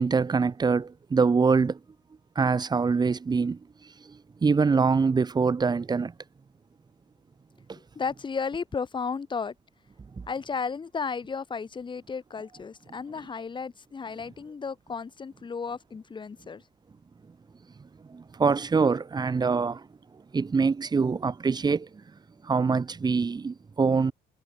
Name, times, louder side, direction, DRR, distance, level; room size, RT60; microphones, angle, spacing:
voice 1, 0.0-1.8 2.3-3.6 4.1-6.1 7.7-7.8 18.1-19.9 20.3-21.9 22.4-24.1, right 5 dB, 25° right, 1.5 m, -24 dB
voice 2, 7.9-9.5 10.3-16.6, left 5 dB, 30° left, 2.3 m, -34 dB
cardioid pair, 110°, 17 cm